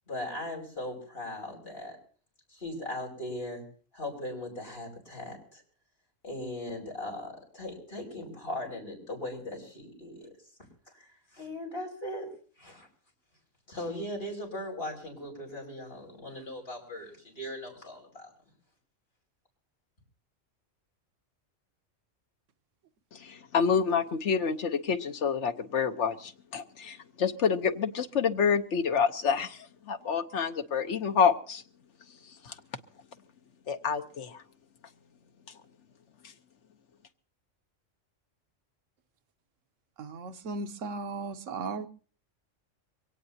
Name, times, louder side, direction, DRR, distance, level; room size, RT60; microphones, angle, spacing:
voice 1, 0.1-2.0 2.5-3.6 3.9-5.6 6.2-10.3 10.9-12.3 12.6-12.9 13.7-18.3, left 1 dB, 50° left, 0 dB, 5.9 m, -39 dB
voice 2, 23.1-31.6 32.4-32.5 33.7-34.4, left 6 dB, 70° left, 8 dB, 1.3 m, -28 dB
voice 3, 40.0-41.9, right 3 dB, 85° right, 8 dB, 1.3 m, -36 dB
23.5 x 17.5 x 2.8 m, 0.41 s
omnidirectional pair, 1.3 m